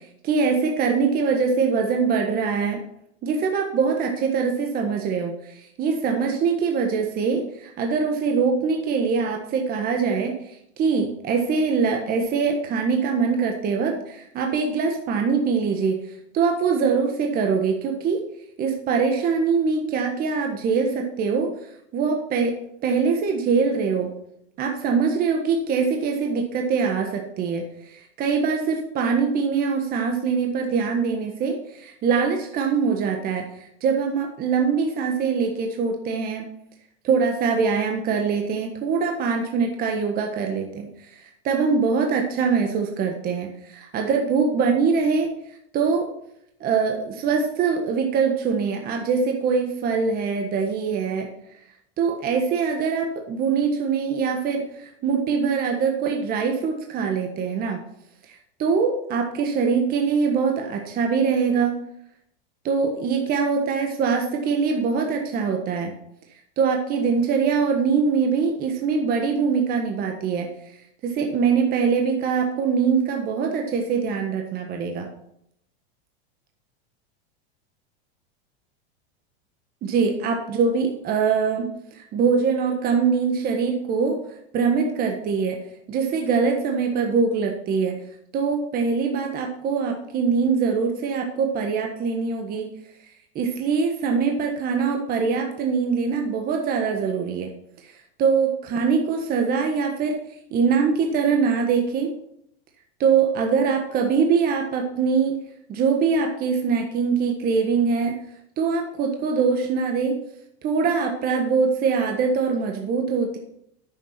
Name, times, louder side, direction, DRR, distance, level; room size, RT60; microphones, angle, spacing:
voice 1, 0.2-2.8 3.2-10.3 10.8-16.0 16.3-18.2 18.6-21.5 21.9-22.5 22.8-24.1 24.6-27.6 27.9-33.4 33.8-36.4 37.0-40.9 41.4-45.3 45.7-46.1 46.6-51.3 52.0-57.8 58.3-61.7 62.6-65.9 66.6-70.5 71.0-75.1 79.8-84.2 84.5-85.6 85.9-87.9 88.3-92.7 93.3-97.5 97.8-97.9 98.2-100.2 100.5-102.1 103.0-105.3 105.7-108.2 108.6-110.2 110.6-113.4, right 5 dB, 30° right, 3 dB, 1.4 m, -23 dB
9.7 x 7.3 x 5.8 m, 0.74 s
supercardioid pair, 145°, 31 cm